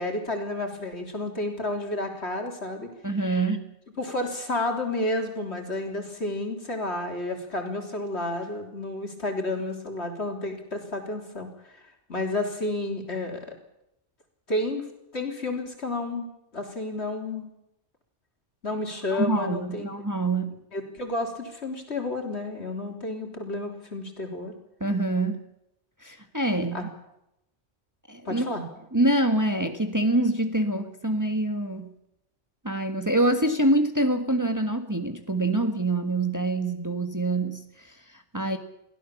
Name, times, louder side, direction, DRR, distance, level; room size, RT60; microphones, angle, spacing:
voice 1, 0.0-2.9 4.0-11.8 12.1-13.5 14.5-14.9 15.1-16.3 16.5-17.5 18.6-19.9 20.7-24.5 26.7-26.9 28.3-28.6, left 2 dB, 65° left, 3 dB, 3.8 m, -31 dB
voice 2, 3.0-3.7 19.1-20.5 24.8-25.4 26.0-26.8 28.1-28.5 28.9-31.9 32.6-38.6, right 1 dB, 15° right, 6 dB, 1.6 m, -25 dB
23.0 x 16.0 x 7.2 m, 0.83 s
omnidirectional pair, 1.2 m